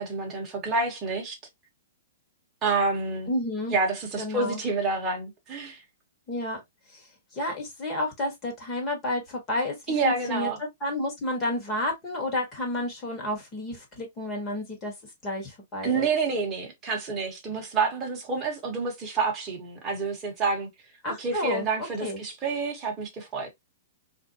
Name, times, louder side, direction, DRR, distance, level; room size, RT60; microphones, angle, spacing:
voice 1, 0.0-1.4 2.6-3.3 3.7-5.8 9.9-10.6 15.8-20.7 21.1-23.5, right 4 dB, 15° right, 1.1 m, -28 dB
voice 2, 3.3-3.7 4.2-4.6 6.3-6.6 6.9-7.0 7.3-9.7 10.0-10.5 10.8-14.9 15.2-16.1 21.0-21.6 22.0-22.2, left 1 dB, 20° left, 1.4 m, -30 dB
4.0 x 2.6 x 2.6 m
hypercardioid pair, 170°, 0 cm